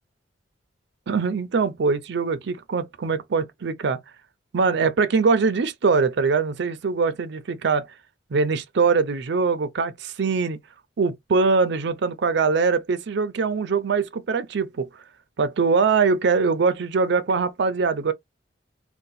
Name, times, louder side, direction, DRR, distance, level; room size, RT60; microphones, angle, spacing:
voice 1, 1.1-4.0 4.5-7.9 8.3-10.6 11.0-14.9 15.4-18.1, right 4 dB, 65° right, 0.5 m, -22 dB
2.7 x 2.2 x 4.0 m
head